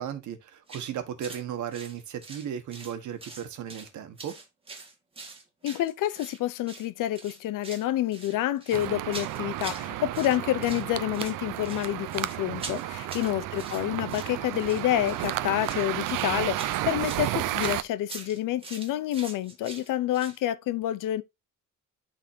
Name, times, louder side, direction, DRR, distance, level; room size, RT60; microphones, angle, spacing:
voice 1, 0.0-4.3 12.5-12.8, right 9 dB, 65° right, 1.6 m, -36 dB
sound 1, 0.7-0.9 1.2-1.4 1.7-2.9 3.2-3.9 4.2-6.4 6.7-6.9 7.2-7.9 8.1-9.9 10.1-10.9 11.1-20.4, right 3 dB, 15° right, 1.8 m, -43 dB
voice 2, 5.6-21.2, left 13 dB, 80° left, 0.7 m, -28 dB
sound 2, 8.7-17.8, right 15 dB, 80° right, 0.6 m, -32 dB
12.0 x 4.2 x 2.7 m
cardioid pair, 175°, 32 cm